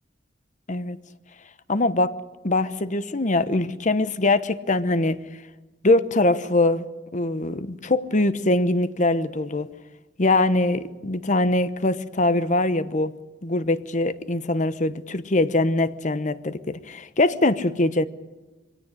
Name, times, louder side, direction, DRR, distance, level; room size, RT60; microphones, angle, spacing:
voice 1, 1.7-2.2 2.4-5.2 5.8-6.8 7.1-9.7 10.2-13.1 13.4-18.1, left 2 dB, 40° left, 1.0 m, -22 dB
23.0 x 17.5 x 9.9 m
head